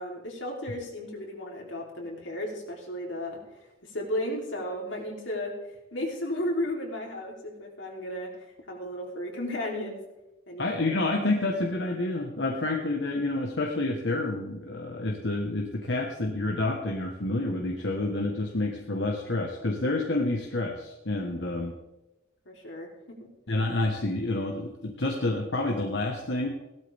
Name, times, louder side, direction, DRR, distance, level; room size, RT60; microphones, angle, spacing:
voice 1, 0.0-3.4 3.8-5.6 5.9-10.0 10.5-10.8 22.5-23.3, left 1 dB, 90° left, 0 dB, 3.5 m, -34 dB
voice 2, 10.6-21.8 23.5-26.5, left 2 dB, 70° left, 1 dB, 1.5 m, -29 dB
17.5 x 12.5 x 3.6 m, 0.97 s
head